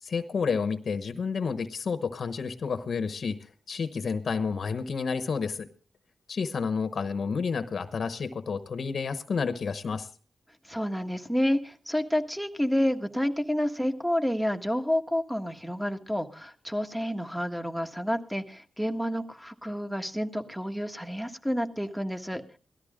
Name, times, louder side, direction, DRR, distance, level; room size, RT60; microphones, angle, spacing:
voice 1, 0.0-5.7 6.3-10.1, left 5 dB, 65° left, 11 dB, 1.0 m, -30 dB
voice 2, 10.6-22.4, equal, ahead, 7 dB, 1.6 m, -29 dB
18.0 x 13.5 x 3.7 m, 0.38 s
cardioid pair, 75°, 0 cm